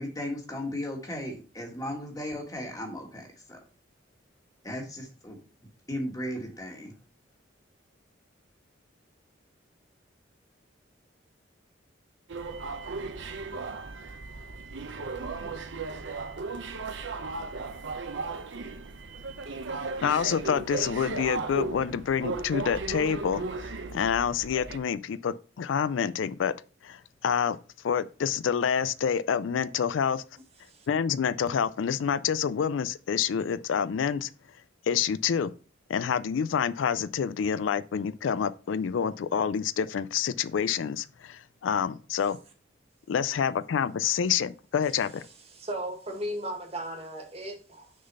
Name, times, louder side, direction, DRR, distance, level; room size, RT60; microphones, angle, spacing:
voice 1, 0.0-3.6 4.6-5.4 5.9-6.9, left 1 dB, 20° left, 1.5 m, -36 dB
sound 1, 12.3-24.8, right 3 dB, 75° right, 0.7 m, -36 dB
voice 2, 20.0-26.5 26.8-27.6 27.8-30.2 30.9-34.3 34.9-35.5 35.9-42.4 43.1-45.2, left 7 dB, 90° left, 0.4 m, -27 dB
voice 3, 45.5-47.9, right 1 dB, 35° right, 1.6 m, -36 dB
6.4 x 4.0 x 5.4 m
head